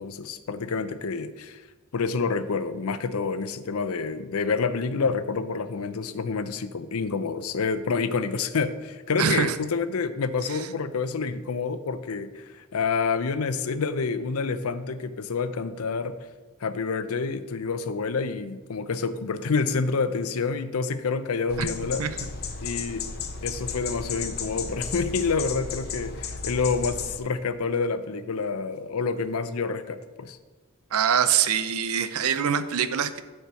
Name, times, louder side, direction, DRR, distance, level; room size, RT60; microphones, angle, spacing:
voice 1, 0.0-1.6 1.9-16.2 16.6-22.0 22.6-23.1 23.4-30.4, left 4 dB, 90° left, 12 dB, 0.6 m, -28 dB
voice 2, 9.2-9.6 10.5-10.7 21.6-21.7 22.0-22.2 30.9-33.2, right 8 dB, 90° right, 12 dB, 0.6 m, -24 dB
sound 1, 21.5-27.2, left 5 dB, 50° left, 0.8 m, -34 dB
10.5 x 4.5 x 5.7 m, 1.3 s
head